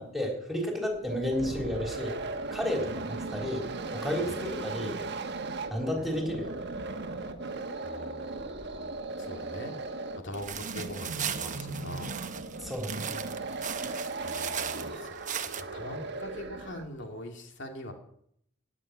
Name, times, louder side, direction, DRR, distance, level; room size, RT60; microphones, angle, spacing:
voice 1, 0.0-2.1 2.5-3.7 3.9-5.0 5.7-6.6 12.6-13.1, left 1 dB, ahead, 1 dB, 3.8 m, -32 dB
sound 1, 0.9-17.0, right 3 dB, 60° right, 1.3 m, -37 dB
voice 2, 7.8-12.1 14.2-15.1 15.4-17.9, left 1 dB, 65° left, 3 dB, 2.5 m, -43 dB
sound 2, 10.3-15.6, right 9 dB, 40° right, 1.0 m, -38 dB
17.5 x 7.6 x 10.0 m, 0.70 s
head